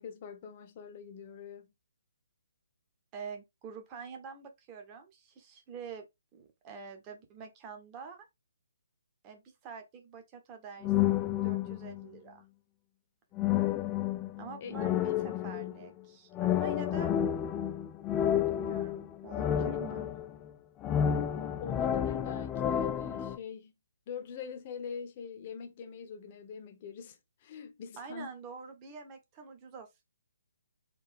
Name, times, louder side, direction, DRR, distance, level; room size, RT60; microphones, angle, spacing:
voice 1, 0.0-1.7 14.6-14.9 21.5-23.7 24.1-28.3, left 6 dB, 35° left, 0.8 m, -43 dB
voice 2, 3.1-6.1 6.3-8.3 9.2-11.1 11.4-12.4 14.4-17.1 18.5-20.1 28.0-30.0, right 6 dB, 25° right, 1.0 m, -46 dB
sound 1, 10.8-12.0 13.4-15.9 16.3-20.5 20.8-23.4, left 10 dB, 15° left, 0.3 m, -30 dB
4.2 x 2.6 x 3.5 m
figure-of-eight pair, 135°, 0 cm